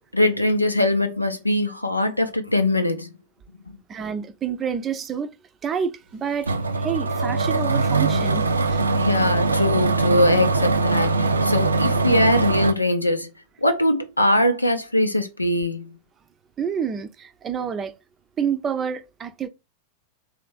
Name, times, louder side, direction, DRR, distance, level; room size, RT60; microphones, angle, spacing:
voice 1, 0.1-3.1 9.0-13.3 13.6-16.0, left 1 dB, 85° left, 0.6 m, -22 dB
voice 2, 3.9-5.3 5.6-8.8 16.6-18.0 18.4-19.5, right 7 dB, 25° right, 0.5 m, -28 dB
sound 1, 6.4-12.7, right 3 dB, 75° right, 0.5 m, -21 dB
3.4 x 3.2 x 4.8 m
figure-of-eight pair, 90°, 0 cm